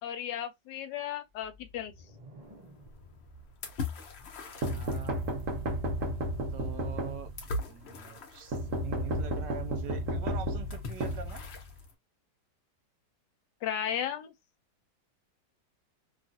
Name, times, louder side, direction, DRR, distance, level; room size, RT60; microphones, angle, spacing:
voice 1, 0.0-1.9 13.6-14.3, left 9 dB, 80° left, 1.2 m, -35 dB
sound 1, 1.3-5.1, equal, 30° right, 0.8 m, -55 dB
sound 2, 2.4-11.9, left 3 dB, 55° left, 0.7 m, -43 dB
sound 3, 4.6-7.6 8.5-11.8, right 1 dB, 55° right, 1.0 m, -33 dB
voice 2, 4.7-5.2 6.5-7.3 7.7-11.4, right 8 dB, 75° right, 1.3 m, -43 dB
3.0 x 2.4 x 2.5 m
omnidirectional pair, 1.9 m